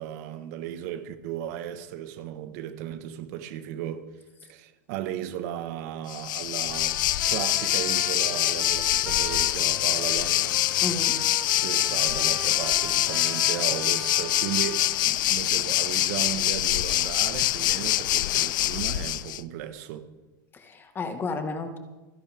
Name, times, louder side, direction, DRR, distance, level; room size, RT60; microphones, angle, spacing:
voice 1, 0.0-4.1 4.4-7.0 7.3-10.6 11.6-20.1, right 11 dB, 55° right, 1.5 m, -35 dB
Waves surf, 6.1-19.4, left 15 dB, 70° left, 0.5 m, -25 dB
Trumpet, 6.7-15.1, right 6 dB, 15° right, 0.6 m, -42 dB
voice 2, 10.8-11.2 20.5-21.8, left 3 dB, 20° left, 1.7 m, -32 dB
29.0 x 10.5 x 3.6 m
supercardioid pair, 135°, 11 cm